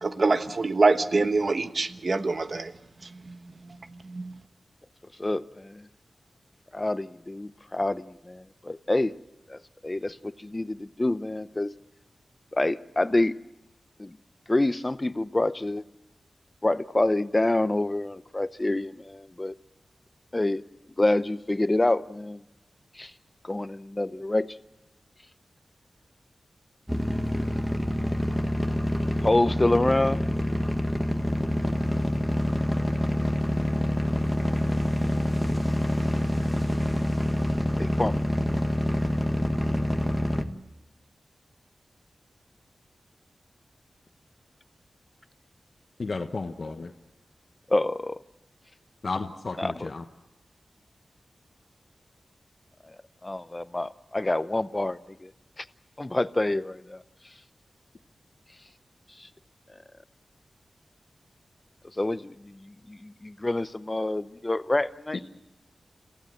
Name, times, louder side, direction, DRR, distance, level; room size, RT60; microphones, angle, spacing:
voice 1, 0.0-2.7 3.3-3.4 3.7-3.8 4.0-4.3, right 3 dB, 50° right, 10 dB, 1.2 m, -25 dB
voice 2, 5.2-5.9 6.7-9.1 9.5-11.7 12.5-13.3 14.0-14.2 14.5-15.8 16.6-19.5 20.3-20.6 21.0-22.4 23.0-23.1 23.4-24.5 29.2-30.2 37.8-38.2 47.7-48.2 49.6-49.9 53.2-55.3 55.6-55.7 56.0-57.0 59.2-59.3 62.0-65.2, left 2 dB, 25° left, 14 dB, 0.7 m, -27 dB
sound 1, 26.9-40.4, equal, 5° right, 1.6 m, -26 dB
voice 3, 46.0-46.9 49.0-50.0, left 3 dB, 55° left, 5 dB, 1.2 m, -33 dB
28.0 x 16.0 x 7.9 m, 1.0 s
wide cardioid pair, 80°, 0 cm